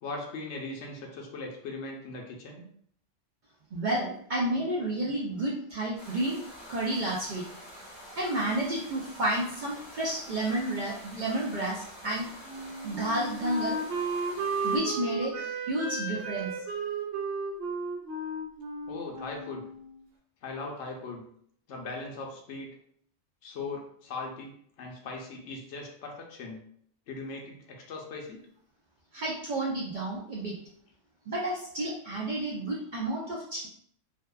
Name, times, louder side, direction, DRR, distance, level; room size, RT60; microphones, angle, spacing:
voice 1, 0.0-2.7 18.9-19.7 20.4-21.2 21.7-22.7 23.4-26.6 27.1-28.5, left 3 dB, 75° left, 0 dB, 0.9 m, -39 dB
voice 2, 3.7-6.4 6.7-7.4 8.0-12.3 12.8-13.8 14.6-16.5 29.1-30.6 31.3-33.7, right 1 dB, 60° right, -5 dB, 0.5 m, -31 dB
sound 1, 6.0-14.8, equal, 25° right, 1.0 m, -47 dB
Wind instrument woodwind instrument, 12.5-20.0, right 3 dB, 85° right, 1.0 m, -34 dB
2.6 x 2.2 x 2.2 m, 0.65 s
omnidirectional pair, 1.2 m